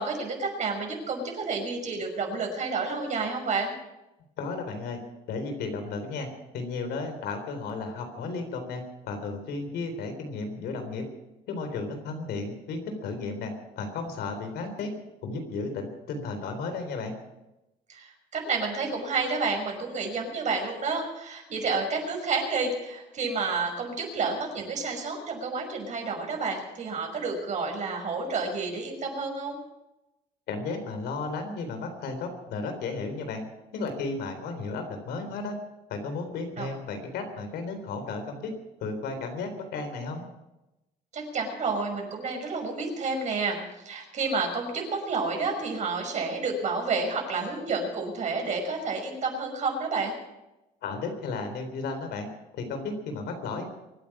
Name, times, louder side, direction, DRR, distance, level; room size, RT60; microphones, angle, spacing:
voice 1, 0.0-3.7 17.9-29.6 36.6-36.7 41.1-43.6 43.8-50.2, right 4 dB, 45° right, 2 dB, 5.8 m, -30 dB
voice 2, 4.4-5.0 5.3-6.3 6.5-11.0 11.5-14.9 15.2-17.2 30.5-33.4 33.7-35.6 35.9-38.5 38.8-40.2 50.8-52.3 52.5-53.6, left 3 dB, 75° left, 6 dB, 3.9 m, -34 dB
24.5 x 9.5 x 6.1 m, 0.96 s
cardioid pair, 110°, 17 cm